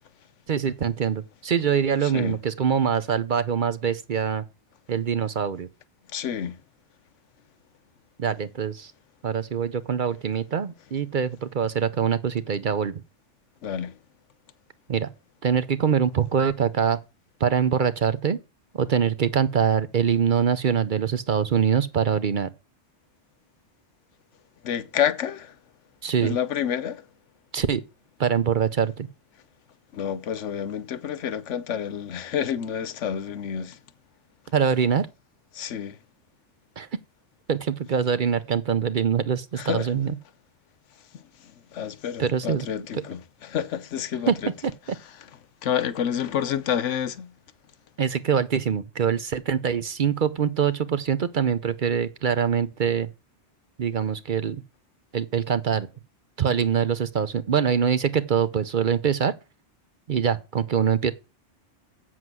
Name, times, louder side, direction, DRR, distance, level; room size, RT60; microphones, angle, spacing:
voice 1, 0.5-4.4 4.9-5.7 8.2-8.9 9.2-12.9 14.9-15.1 15.4-17.0 17.4-18.4 18.8-22.5 26.0-26.4 27.5-27.8 28.2-29.1 34.5-35.1 36.8-36.9 37.5-40.1 42.2-42.7 42.9-43.0 44.3-44.4 44.6-44.7 48.0-53.1 53.8-54.6 55.1-55.9 56.4-59.4 60.1-61.1, right 7 dB, 50° right, 0.7 m, -24 dB
voice 2, 2.0-2.4 6.1-6.6 13.6-13.9 24.6-25.5 26.2-27.0 29.9-33.8 35.5-36.0 39.6-39.9 41.7-44.5 45.6-47.3, left 9 dB, 85° left, 1.1 m, -29 dB
7.9 x 7.5 x 6.1 m
omnidirectional pair, 1.2 m